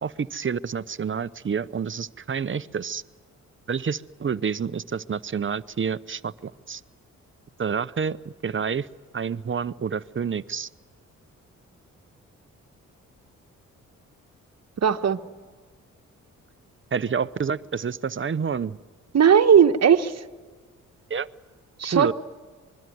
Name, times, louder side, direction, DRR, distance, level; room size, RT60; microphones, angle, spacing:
voice 1, 0.0-3.0 3.7-6.8 7.6-8.9 9.1-10.7 16.9-18.8 21.1-21.3 21.9-22.1, right 6 dB, 40° right, 15 dB, 0.9 m, -28 dB
voice 2, 14.8-15.2 19.1-20.2 21.8-22.1, right 7 dB, 55° right, 7 dB, 1.4 m, -17 dB
25.5 x 22.0 x 9.5 m, 1.5 s
supercardioid pair, 60°, 32 cm